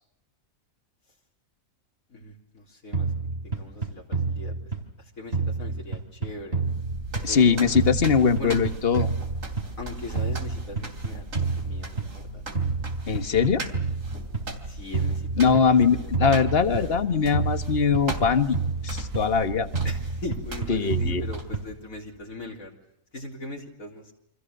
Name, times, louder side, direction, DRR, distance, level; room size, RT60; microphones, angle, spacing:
voice 1, 2.1-3.1 3.4-4.6 5.0-6.6 7.3-7.8 8.4-8.6 9.8-12.4 14.6-16.1 16.4-17.2 19.8-22.8 23.1-24.1, left 2 dB, 80° left, -1 dB, 4.2 m, -39 dB
sound 1, 2.9-5.0 5.3-7.5 7.8-9.9 10.2-12.3 12.6-14.5 14.9-17.0 17.3-19.4 19.7-21.9, right 4 dB, 45° right, 3.6 m, -29 dB
sound 2, 6.6-21.8, right 2 dB, 70° right, 3.6 m, -37 dB
voice 2, 7.2-9.1 13.1-13.6 15.4-18.6 18.8-19.7 20.7-21.2, left 6 dB, 45° left, 10 dB, 1.7 m, -21 dB
29.0 x 25.5 x 6.8 m, 0.80 s
omnidirectional pair, 1.4 m